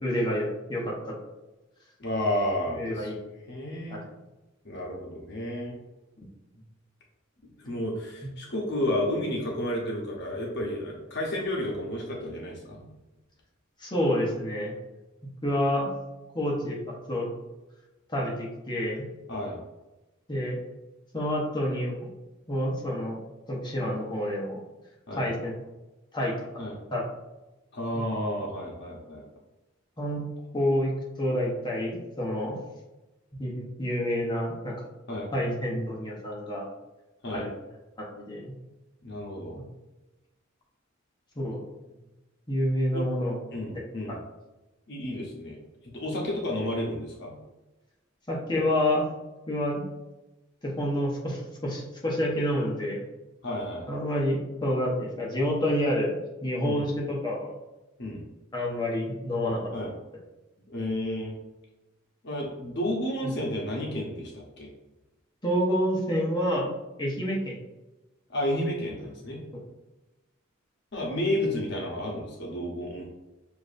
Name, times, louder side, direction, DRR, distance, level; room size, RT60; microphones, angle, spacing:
voice 1, 0.0-1.1 2.7-3.1 3.9-4.0 13.8-14.7 15.4-15.9 16.3-16.8 17.1-17.3 18.1-19.1 20.3-20.6 21.1-21.9 22.5-23.2 23.5-24.6 25.1-25.5 26.1-26.3 26.9-27.0 30.0-30.3 30.5-30.9 31.2-32.6 33.4-34.7 35.3-36.7 37.3-37.5 38.0-38.5 41.4-41.6 42.5-43.4 43.7-43.8 48.3-49.1 49.5-49.9 50.6-53.0 53.9-57.5 58.5-59.6 65.4-66.7 67.0-67.6, equal, 20° left, -3 dB, 0.9 m, -28 dB
voice 2, 2.0-3.2 3.5-4.0 4.6-5.7 7.6-12.8 19.3-19.6 25.1-25.3 26.6-26.8 27.7-29.2 35.1-35.3 37.2-37.4 39.0-39.6 42.9-43.0 43.5-44.2 44.9-45.6 45.9-47.3 53.4-53.9 56.6-56.8 58.0-58.2 59.7-59.9 60.7-61.4 62.2-64.7 68.3-69.4 70.9-73.0, left 1 dB, 55° left, -2 dB, 0.9 m, -31 dB
6.9 x 2.6 x 2.5 m, 1.1 s
head